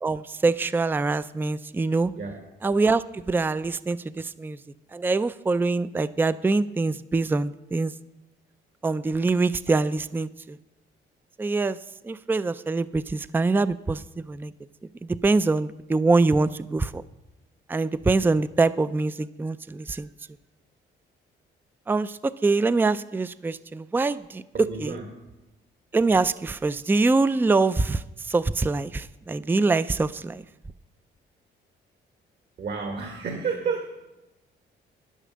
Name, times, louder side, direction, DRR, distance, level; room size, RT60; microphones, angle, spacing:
voice 1, 0.0-2.1 2.6-4.6 4.9-7.9 8.8-10.6 11.4-11.8 12.0-14.5 15.0-17.0 17.7-20.1 21.9-24.9 25.9-28.0 28.3-30.4, right 3 dB, 10° right, 15 dB, 0.4 m, -24 dB
voice 2, 24.5-25.1 32.6-33.9, right 5 dB, 55° right, 3 dB, 1.6 m, -31 dB
10.0 x 10.0 x 6.3 m, 0.97 s
cardioid pair, 90°, 20 cm